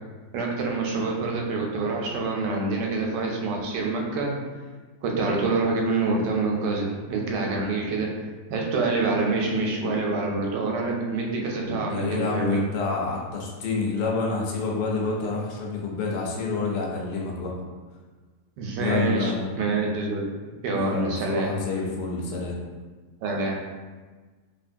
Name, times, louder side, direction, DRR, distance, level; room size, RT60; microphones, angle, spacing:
voice 1, 0.3-4.3 5.0-8.1 8.5-12.6 18.6-20.2 20.6-21.5 23.2-23.6, right 3 dB, 85° right, 0 dB, 1.2 m, -26 dB
voice 2, 11.9-17.5 18.7-19.5 20.7-22.6, left 4 dB, 80° left, -1 dB, 1.2 m, -28 dB
2.8 x 2.6 x 2.5 m, 1.4 s
omnidirectional pair, 1.8 m